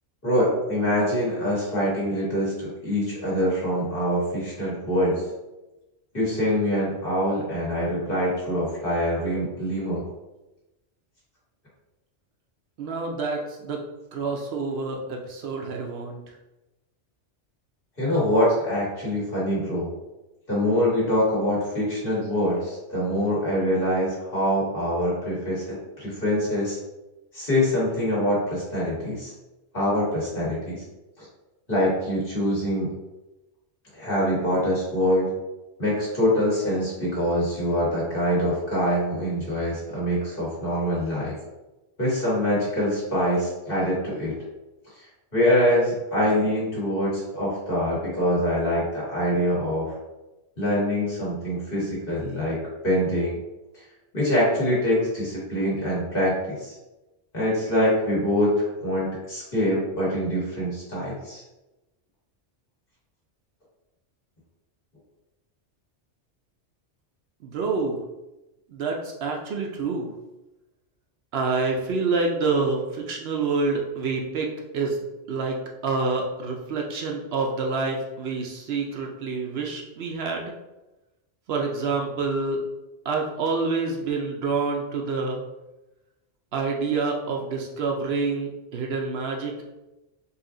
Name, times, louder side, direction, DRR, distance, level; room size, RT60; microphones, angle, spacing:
voice 1, 0.2-5.2 6.1-10.1 18.0-19.9 20.5-26.8 27.3-29.3 29.7-30.8 31.2-31.3 31.7-32.9 33.9-35.3 35.8-41.3 42.0-44.3 45.3-49.9 50.6-52.6 52.8-53.4 54.1-56.7 57.3-61.4, equal, 50° left, -7 dB, 1.9 m, -24 dB
voice 2, 12.8-13.8 14.1-16.2 67.4-68.0 68.7-70.1 71.3-75.6 75.8-80.5 81.5-82.6 83.1-85.4 86.5-89.6, right 4 dB, 65° right, 1 dB, 0.8 m, -27 dB
4.1 x 2.6 x 3.7 m, 1.0 s
omnidirectional pair, 1.2 m